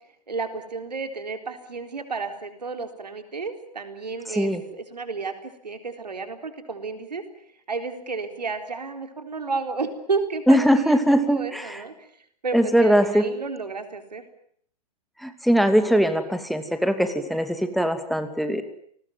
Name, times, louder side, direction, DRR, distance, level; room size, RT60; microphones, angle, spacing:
voice 1, 0.3-12.1 12.4-14.2, right 4 dB, 85° right, 7 dB, 4.0 m, -32 dB
voice 2, 10.5-11.8 12.5-13.2 15.2-18.6, equal, ahead, 8 dB, 2.8 m, -21 dB
30.0 x 20.0 x 9.1 m, 0.66 s
figure-of-eight pair, 105°, 21 cm